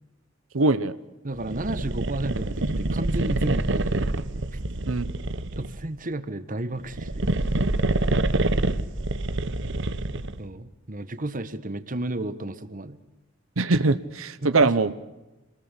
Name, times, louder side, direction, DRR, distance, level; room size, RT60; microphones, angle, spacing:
voice 1, 0.5-0.9 4.9-5.2 13.6-14.9, right 3 dB, 90° right, 13 dB, 1.0 m, -22 dB
voice 2, 1.2-4.6 5.5-7.3 10.4-13.0 14.4-14.7, right 1 dB, 40° right, 12 dB, 1.4 m, -33 dB
sound 1, 1.4-5.9 6.8-10.4, right 2 dB, 65° right, 1.2 m, -26 dB
27.5 x 20.5 x 8.4 m, 1.1 s
head